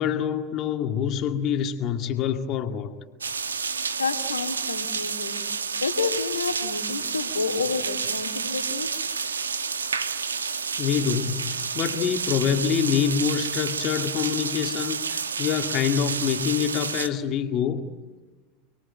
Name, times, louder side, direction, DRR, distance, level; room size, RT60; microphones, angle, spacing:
voice 1, 0.0-2.9 10.8-17.8, left 8 dB, 45° left, 6 dB, 2.2 m, -26 dB
sound 1, 3.2-17.1, right 5 dB, 85° right, 1.4 m, -30 dB
voice 2, 4.0-5.4 5.8-9.0, left 4 dB, 85° left, 6 dB, 2.3 m, -29 dB
29.5 x 21.5 x 9.1 m, 1.3 s
figure-of-eight pair, 80°, 0 cm